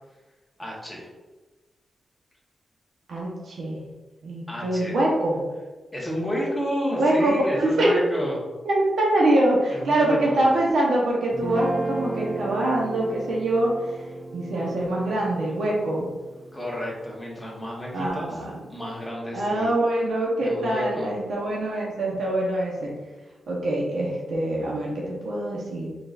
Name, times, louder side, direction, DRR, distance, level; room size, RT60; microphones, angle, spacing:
voice 1, 0.6-1.1 4.5-5.0 5.9-8.4 9.7-10.4 16.5-18.4 18.7-19.7 20.4-21.1, equal, 5° left, -4 dB, 1.1 m, -30 dB
voice 2, 3.1-3.8 4.2-5.4 7.0-8.0 8.7-13.7 14.3-16.1 17.9-18.6 19.3-22.9 23.5-25.9, right 1 dB, 85° right, -3 dB, 0.9 m, -24 dB
Guitar, 11.3-17.7, right 2 dB, 15° right, 0.4 m, -35 dB
4.7 x 3.8 x 2.5 m, 1.2 s
wide cardioid pair, 150°, 0 cm